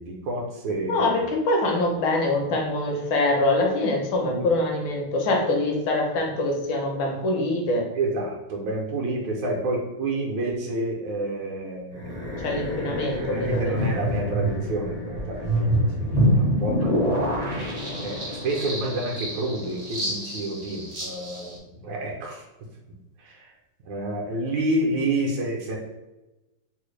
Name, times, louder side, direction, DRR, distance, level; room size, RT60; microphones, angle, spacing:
voice 1, 0.0-1.2 4.1-4.5 8.0-12.4 13.2-17.4 18.0-22.4 23.2-23.5 23.8-25.8, right 1 dB, 75° right, -1 dB, 1.3 m, -29 dB
voice 2, 0.9-7.9 12.4-13.7, left 2 dB, 75° left, 1 dB, 1.5 m, -24 dB
sound 1, 11.9-21.6, equal, 45° right, 0.5 m, -27 dB
3.9 x 2.1 x 3.1 m, 1.0 s
omnidirectional pair, 2.2 m